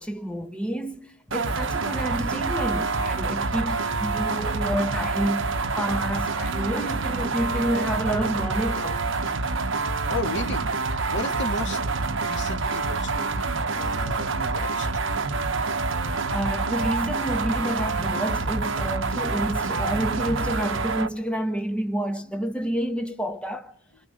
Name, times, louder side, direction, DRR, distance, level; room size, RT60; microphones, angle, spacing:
voice 1, 0.0-9.1 16.3-23.7, right 1 dB, 5° left, 1.3 m, -29 dB
sound 1, 1.3-21.1, right 3 dB, 60° right, 1.2 m, -27 dB
voice 2, 10.1-10.7 11.1-11.8 12.2-14.9, left 2 dB, 55° left, 2.7 m, -34 dB
30.0 x 27.0 x 6.6 m
head